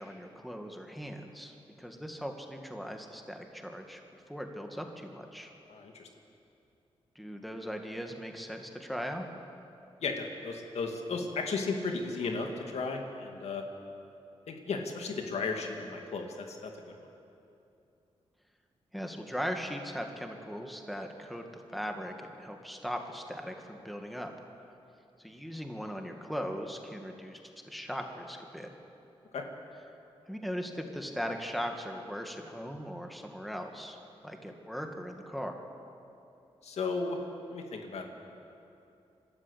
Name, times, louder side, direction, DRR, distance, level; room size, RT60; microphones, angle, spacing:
voice 1, 0.0-5.5 7.2-9.3 18.9-21.4 21.7-24.3 25.2-28.7 30.3-34.0 34.2-35.6, equal, ahead, 3 dB, 2.0 m, -39 dB
voice 2, 5.7-6.1 10.0-13.6 14.5-16.9 29.3-29.4 36.6-37.2 37.5-38.1, left 4 dB, 80° left, 3 dB, 2.3 m, -35 dB
27.0 x 12.5 x 8.2 m, 2.7 s
cardioid pair, 90°, 11 cm